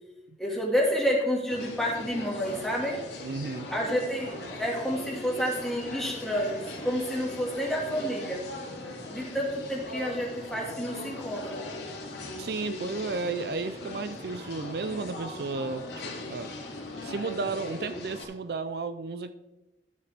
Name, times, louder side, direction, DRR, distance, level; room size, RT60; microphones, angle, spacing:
voice 1, 0.4-3.0 3.7-8.4 9.1-11.6, equal, ahead, -2 dB, 1.9 m, -29 dB
sound 1, 1.5-18.2, left 2 dB, 85° left, 2.3 m, -39 dB
voice 2, 3.2-3.7 12.4-15.9 16.2-16.5 17.0-19.3, right 4 dB, 60° right, 12 dB, 0.4 m, -33 dB
12.5 x 7.4 x 3.4 m, 0.99 s
head